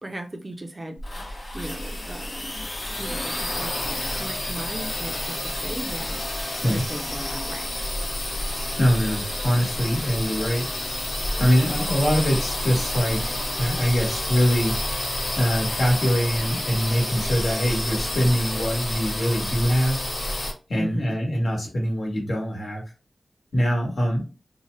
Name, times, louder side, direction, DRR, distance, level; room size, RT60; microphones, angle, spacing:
voice 1, 0.0-2.7 2.9-7.8 20.7-21.2, right 1 dB, 35° right, 0.4 m, -37 dB
sound 1, 1.0-20.5, left 1 dB, 55° left, 0.8 m, -29 dB
voice 2, 8.8-10.6 11.4-14.9 15.4-20.0 20.7-22.8 23.5-24.2, equal, 75° left, 1.2 m, -23 dB
2.7 x 2.1 x 3.0 m
wide cardioid pair, 85°, 0 cm